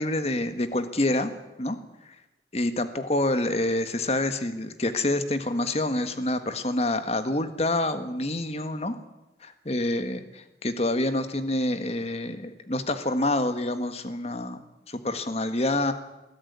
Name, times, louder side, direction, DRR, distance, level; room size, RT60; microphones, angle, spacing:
voice 1, 0.0-1.3 1.6-1.8 2.5-9.0 9.4-14.6 14.9-15.9, left 1 dB, 35° left, 10 dB, 1.6 m, -27 dB
21.0 x 14.0 x 9.7 m, 1.0 s
head